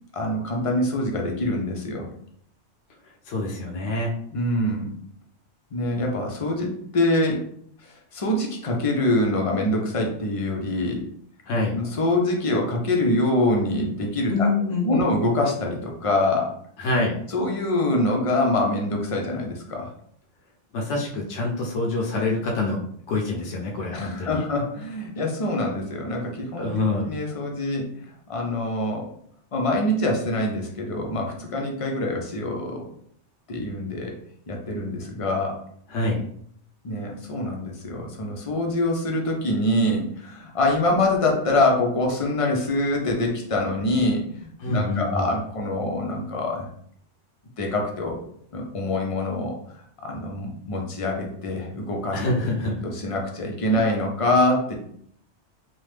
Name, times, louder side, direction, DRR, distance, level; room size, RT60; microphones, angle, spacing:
voice 1, 0.1-2.1 4.3-4.9 5.7-7.4 7.8-11.0 11.7-14.5 14.8-16.5 17.3-19.9 23.9-26.7 27.1-29.1 29.5-32.8 33.5-34.1 34.5-35.6 36.8-46.7 47.6-48.2 48.5-49.6 50.0-52.2 52.8-54.8, left 1 dB, 45° left, 1 dB, 0.4 m, -25 dB
voice 2, 3.3-4.1 11.5-11.8 14.3-14.9 16.8-17.2 20.7-22.8 23.1-24.4 26.6-27.1 35.9-36.2 44.6-45.3 52.1-52.8, left 2 dB, 75° left, -2 dB, 0.9 m, -25 dB
2.9 x 2.1 x 3.2 m, 0.64 s
omnidirectional pair, 1.2 m